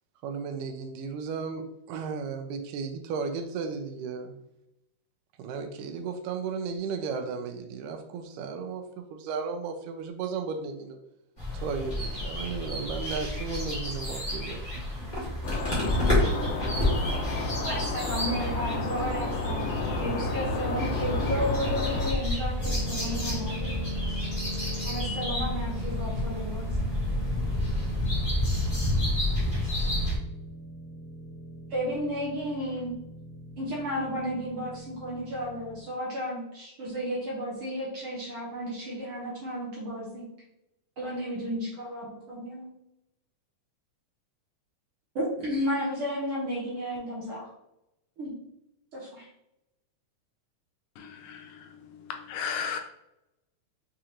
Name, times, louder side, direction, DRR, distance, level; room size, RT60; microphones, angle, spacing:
voice 1, 0.2-4.4 5.4-11.0 11.5-14.7, right 5 dB, 85° right, 6 dB, 2.2 m, -34 dB
sound 1, 11.4-30.2, left 1 dB, 35° left, 0.7 m, -30 dB
sound 2, 15.4-22.1, left 2 dB, 70° left, 1.7 m, -30 dB
voice 2, 17.6-19.7 20.0-23.7 24.8-26.7 31.7-32.9 33.6-40.3 41.0-42.7 45.1-47.5 48.2-48.3 48.9-49.3, equal, 60° right, -5 dB, 1.5 m, -33 dB
sound 3, 22.6-35.8, left 1 dB, 50° left, 1.2 m, -40 dB
voice 3, 51.0-51.4 52.3-52.8, left 7 dB, 90° left, 4 dB, 2.2 m, -33 dB
6.5 x 2.5 x 2.9 m, 0.85 s
omnidirectional pair, 3.7 m